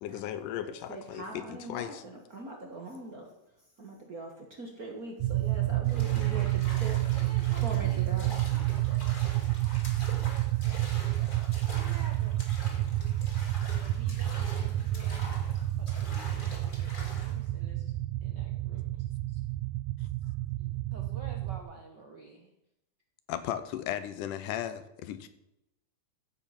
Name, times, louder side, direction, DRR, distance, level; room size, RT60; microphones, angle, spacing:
voice 1, 0.0-2.0 23.3-25.3, left 11 dB, 85° left, 12 dB, 2.4 m, -36 dB
voice 2, 0.9-3.3 3.8-4.3 4.6-7.0 7.6-8.4, right 2 dB, 40° right, 1 dB, 1.4 m, -41 dB
sound 1, 5.2-21.6, right 15 dB, 85° right, 2.2 m, -30 dB
sound 2, 5.9-17.4, left 1 dB, 20° left, 2.0 m, -45 dB
voice 3, 6.1-6.5 7.1-9.5 10.2-11.4 11.7-12.5 13.8-15.4 15.8-17.9 18.2-19.4 20.2-20.3 20.6-22.5, right 3 dB, 60° right, 1 dB, 1.1 m, -51 dB
14.0 x 8.0 x 5.9 m, 0.86 s
omnidirectional pair, 3.7 m